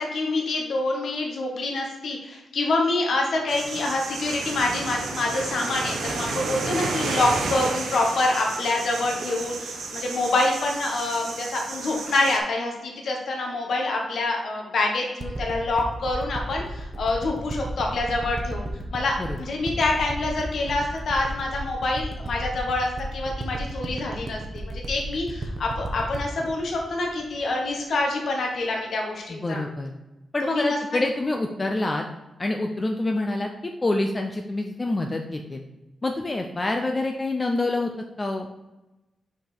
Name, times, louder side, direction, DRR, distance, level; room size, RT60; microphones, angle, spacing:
voice 1, 0.0-29.6 30.4-30.8, left 2 dB, 65° left, 0 dB, 1.3 m, -26 dB
sound 1, 3.5-12.4, right 3 dB, 80° right, 1.0 m, -32 dB
sound 2, 15.2-28.0 28.5-28.6, right 2 dB, 30° right, 0.8 m, -34 dB
voice 2, 29.3-29.9 30.3-32.0 32.4-35.6 36.0-37.9 38.2-38.5, left 2 dB, 25° left, 3 dB, 0.5 m, -26 dB
5.8 x 5.0 x 4.3 m, 1.0 s
wide cardioid pair, 140°, 0 cm